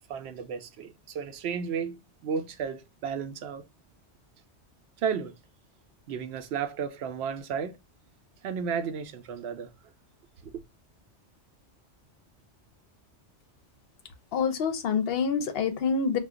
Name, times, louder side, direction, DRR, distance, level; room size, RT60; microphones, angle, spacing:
voice 1, 0.1-3.7 5.0-5.3 6.1-7.8 8.4-9.7 10.5-10.6, right 6 dB, 70° right, 0.8 m, -33 dB
voice 2, 14.3-16.2, left 5 dB, 60° left, 0.7 m, -26 dB
2.3 x 2.2 x 3.5 m
omnidirectional pair, 1.2 m